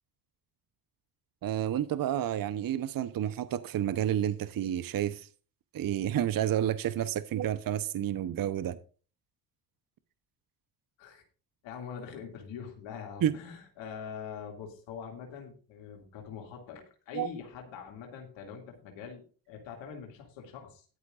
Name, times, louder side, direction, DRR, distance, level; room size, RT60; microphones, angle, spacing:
voice 1, 1.4-5.3 5.7-8.8 13.2-13.4 17.1-17.3, right 11 dB, 45° right, 0.9 m, -30 dB
voice 2, 11.6-20.9, left 7 dB, 70° left, 2.5 m, -43 dB
13.5 x 11.5 x 2.5 m
hypercardioid pair, 60°, 46 cm